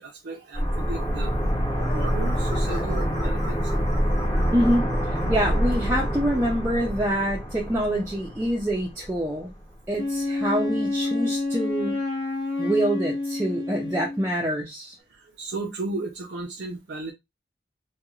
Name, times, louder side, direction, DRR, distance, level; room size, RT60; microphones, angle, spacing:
voice 1, 0.0-1.4 1.9-4.1 4.4-4.5 15.1-17.1, right 3 dB, 70° right, 0.5 m, -35 dB
sound 1, 0.5-9.3 9.5-9.6, equal, 20° left, 0.7 m, -26 dB
sound 2, 1.7-6.5, left 2 dB, 40° left, 1.1 m, -42 dB
voice 2, 4.5-9.5 9.9-12.0 12.6-14.9, right 1 dB, 15° right, 0.4 m, -26 dB
Wind instrument woodwind instrument, 10.0-14.3, left 2 dB, 75° left, 1.0 m, -28 dB
3.0 x 2.2 x 2.3 m
head